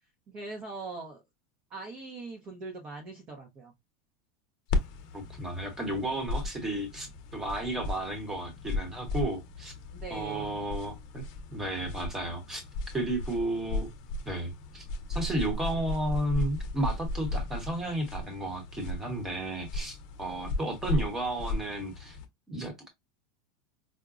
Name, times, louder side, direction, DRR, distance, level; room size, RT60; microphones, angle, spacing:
voice 1, 0.3-1.2 1.7-3.7 9.9-10.7, right 3 dB, 30° right, 0.7 m, -41 dB
sound 1, 4.7-22.3, left 2 dB, 45° left, 0.7 m, -36 dB
voice 2, 5.1-9.7 10.1-11.2 11.5-12.6 12.9-13.9 14.3-14.8 15.1-22.2 22.5-22.9, right 1 dB, 10° right, 1.0 m, -33 dB
4.8 x 2.1 x 2.4 m
supercardioid pair, 165°, 3 cm